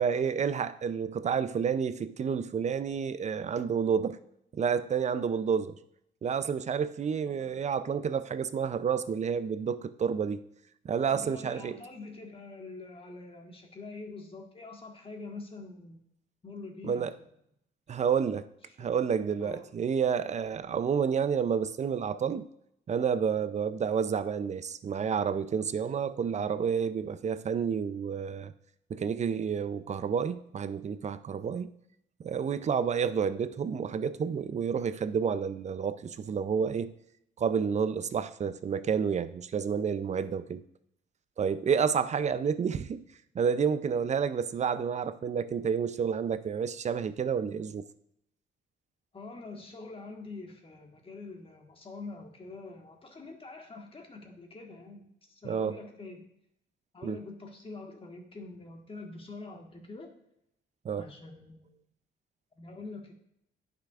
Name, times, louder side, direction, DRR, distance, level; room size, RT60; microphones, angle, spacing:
voice 1, 0.0-4.2 4.5-5.8 6.2-10.4 10.8-11.8 16.8-17.1 17.9-18.5 18.8-22.5 22.9-28.5 28.9-31.7 32.2-36.9 37.4-40.6 41.4-43.0 43.3-47.9 55.4-55.7 57.0-57.2 60.8-61.0, right 7 dB, 35° right, 13 dB, 0.4 m, -30 dB
voice 2, 11.1-16.0 16.4-17.1 18.7-19.0 19.4-19.7 49.1-56.3 56.9-60.1 61.0-61.6 62.6-63.1, left 3 dB, 30° left, 2 dB, 1.5 m, -45 dB
10.0 x 5.8 x 2.4 m, 0.76 s
cardioid pair, 90°, 20 cm